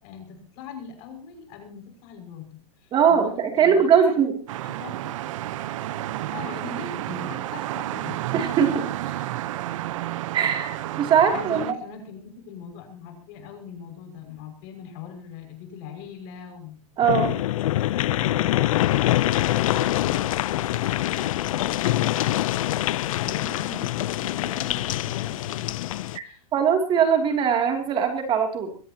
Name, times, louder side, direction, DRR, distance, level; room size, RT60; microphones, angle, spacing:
voice 1, 0.0-4.2 4.6-5.5 6.3-8.2 9.0-9.4 11.3-16.8 17.3-18.8 19.1-25.8 26.2-26.4, left 6 dB, 45° left, 4 dB, 6.1 m, -41 dB
voice 2, 2.9-4.4 8.3-8.9 10.3-11.8 17.0-17.3 26.1-26.2 26.5-28.7, right 7 dB, 25° right, 4 dB, 2.9 m, -21 dB
sound 1, 4.5-11.7, right 14 dB, 60° right, 1.0 m, -31 dB
sound 2, 17.0-26.2, left 14 dB, 65° left, 0.7 m, -24 dB
22.5 x 17.5 x 2.9 m, 0.38 s
hypercardioid pair, 145°, 19 cm